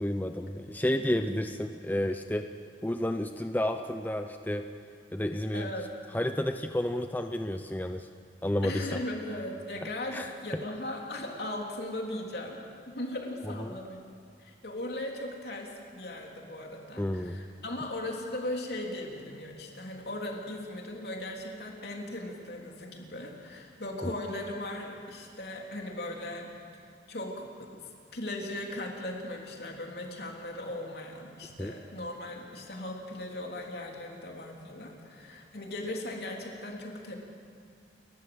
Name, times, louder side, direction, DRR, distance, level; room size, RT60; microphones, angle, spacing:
voice 1, 0.0-2.5 2.8-4.7 5.1-5.7 6.1-8.1 8.4-9.0 10.1-10.3 13.4-13.7 17.0-17.4 24.0-24.1 31.6-31.7, left 1 dB, 10° left, 6 dB, 0.6 m, -31 dB
voice 2, 0.9-1.3 5.5-5.9 8.6-14.0 14.4-26.8 27.1-27.7 28.1-37.2, left 1 dB, 65° left, 0 dB, 3.5 m, -38 dB
29.5 x 14.0 x 8.0 m, 2.3 s
head